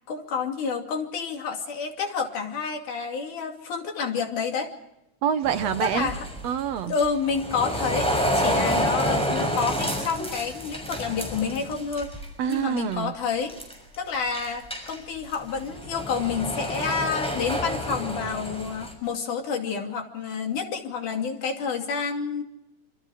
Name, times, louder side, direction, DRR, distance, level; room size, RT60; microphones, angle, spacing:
voice 1, 0.1-4.7 5.8-6.3 6.9-12.2 12.5-13.6 14.0-22.4, left 5 dB, 90° left, 3 dB, 4.2 m, -29 dB
voice 2, 5.2-6.1 6.4-6.9 8.7-8.8 12.4-13.1, right 9 dB, 65° right, 10 dB, 2.1 m, -26 dB
sound 1, 5.4-12.2 12.5-12.9 13.4-13.9 14.3-18.9, equal, ahead, 6.3 m, -29 dB
27.0 x 26.0 x 4.9 m, 0.86 s
omnidirectional pair, 3.4 m